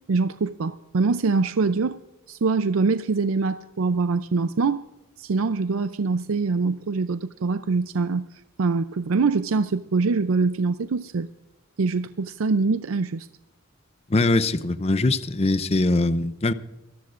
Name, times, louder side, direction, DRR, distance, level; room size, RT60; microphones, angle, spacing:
voice 1, 0.1-2.0 2.3-4.8 5.2-8.3 8.6-11.3 11.8-13.3, right 4 dB, 85° right, 0.5 m, -24 dB
voice 2, 14.1-16.5, left 2 dB, 30° left, 0.6 m, -22 dB
24.5 x 14.0 x 2.5 m
head